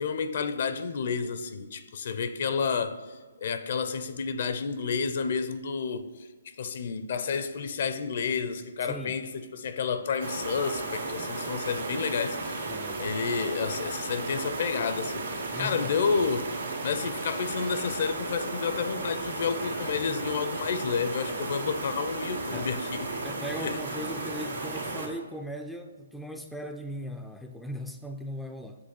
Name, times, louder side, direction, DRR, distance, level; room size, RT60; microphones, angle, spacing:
voice 1, 0.0-6.1 6.6-12.7 13.0-16.5 16.8-23.2 23.6-23.8, left 5 dB, 55° left, 10 dB, 0.6 m, -30 dB
voice 2, 8.8-9.2 12.7-13.0 15.5-16.0 22.5-22.7 23.2-28.9, equal, ahead, 4 dB, 0.4 m, -38 dB
sound 1, 10.2-25.1, right 3 dB, 85° right, 1.8 m, -34 dB
sound 2, 11.6-18.1, right 6 dB, 60° right, 0.6 m, -46 dB
8.0 x 3.2 x 6.4 m, 1.4 s
hypercardioid pair, 140°, 0 cm